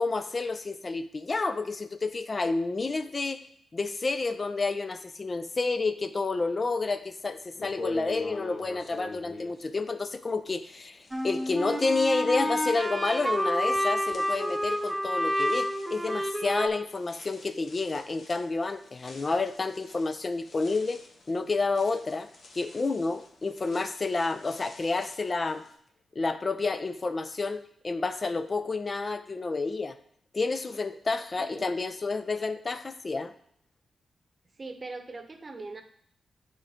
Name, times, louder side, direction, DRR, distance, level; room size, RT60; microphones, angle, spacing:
voice 1, 0.0-3.5 3.7-22.3 22.6-25.6 26.2-30.0 30.3-33.3, left 3 dB, 40° left, 11 dB, 0.4 m, -30 dB
sound 1, 7.0-7.1 7.5-10.7 11.0-25.7, left 2 dB, 60° left, 1.0 m, -46 dB
sound 2, 11.1-16.7, equal, 10° right, 0.7 m, -29 dB
voice 2, 31.4-31.7 34.6-35.8, right 3 dB, 40° right, 7 dB, 0.8 m, -41 dB
8.6 x 3.7 x 3.5 m, 0.65 s
supercardioid pair, 45°, 0 cm